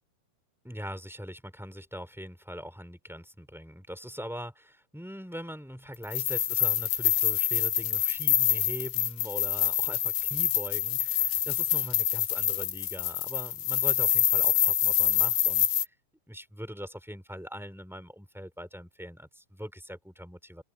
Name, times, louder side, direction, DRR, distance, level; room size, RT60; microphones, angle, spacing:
voice 1, 0.6-15.7 16.3-20.6, equal, ahead, 3.4 m, -41 dB
sound 1, 6.0-15.9, left 11 dB, 80° left, 3.1 m, -26 dB
omnidirectional pair, 4.1 m